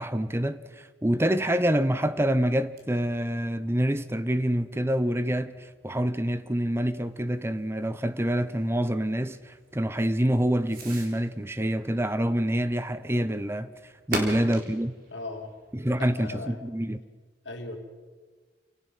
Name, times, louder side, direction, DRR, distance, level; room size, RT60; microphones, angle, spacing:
voice 1, 0.0-13.7 14.1-14.9 15.7-17.0, right 1 dB, 15° right, 0.7 m, -26 dB
Fireworks, 2.0-16.6, right 2 dB, 50° right, 3.9 m, -44 dB
voice 2, 14.1-14.4 15.1-15.5 16.0-16.6 17.4-17.8, left 2 dB, 80° left, 2.8 m, -38 dB
29.0 x 18.0 x 5.6 m
head